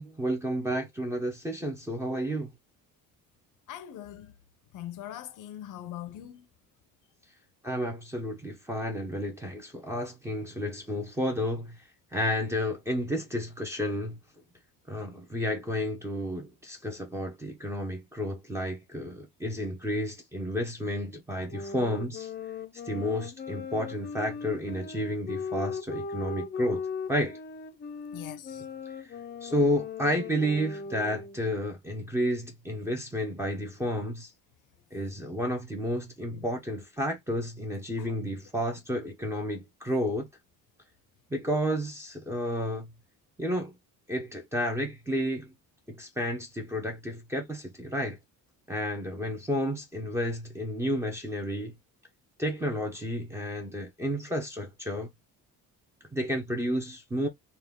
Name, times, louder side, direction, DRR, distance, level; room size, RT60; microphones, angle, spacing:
voice 1, 0.0-2.5 7.6-11.8 12.1-14.2 14.9-22.3 22.9-26.8 27.1-27.4 29.0-29.1 29.4-34.3 34.9-40.3 41.3-42.9 43.4-43.7 44.1-45.5 45.9-48.2 48.7-51.7 52.4-55.1 56.1-57.3, equal, 10° right, 0.9 m, -31 dB
voice 2, 3.7-4.3 4.7-6.5 28.1-28.6 36.3-36.5 38.0-38.1, left 12 dB, 60° left, 0.8 m, -42 dB
sound 1, 21.5-31.5, left 5 dB, 30° left, 0.6 m, -38 dB
4.3 x 2.5 x 3.6 m
cardioid pair, 160°, 34 cm